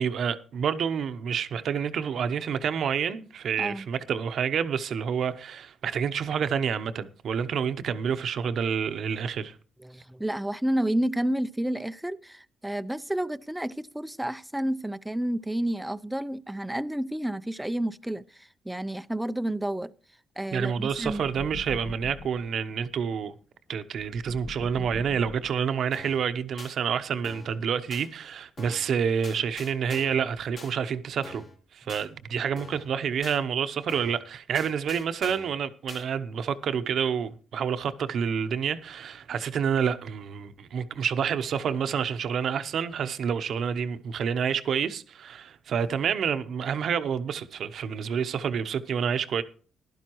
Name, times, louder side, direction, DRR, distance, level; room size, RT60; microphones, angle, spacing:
voice 1, 0.0-9.6 20.5-23.3 23.7-31.4 31.7-49.4, right 7 dB, 65° right, 0.8 m, -28 dB
voice 2, 9.8-19.9 20.4-21.2, right 1 dB, 5° right, 0.5 m, -30 dB
sound 1, 20.9-22.5 24.0-25.8, left 3 dB, 35° left, 1.2 m, -42 dB
sound 2, 25.9-26.2 26.6-26.7 27.2-27.6 27.9-28.1 28.6-28.9 29.2-30.2 30.6-30.7 31.2-31.6 31.9-32.1 32.6-32.9 33.2-33.4 33.9-34.2 34.5-35.5 35.9-36.0, left 3 dB, 50° left, 3.5 m, -44 dB
15.5 x 11.5 x 3.0 m
cardioid pair, 90°, 0 cm